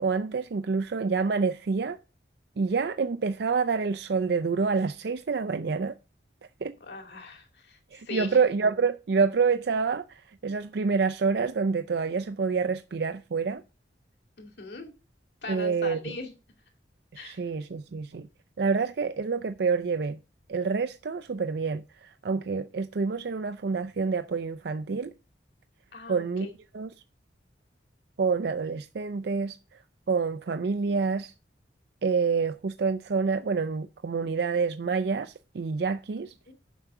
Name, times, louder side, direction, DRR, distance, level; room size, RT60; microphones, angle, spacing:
voice 1, 0.0-2.0 2.6-5.9 6.6-6.8 7.9-13.6 15.5-16.0 17.1-18.3 18.6-20.2 20.5-25.1 26.1-26.5 26.7-26.9 28.2-29.6 30.1-31.3 32.0-36.3, right 5 dB, 60° right, 0.4 m, -27 dB
voice 2, 6.8-8.4 14.4-14.9 15.4-16.3 17.2-17.4 25.9-26.5 36.5-36.6, left 3 dB, 65° left, 2.3 m, -40 dB
7.3 x 5.9 x 6.6 m
head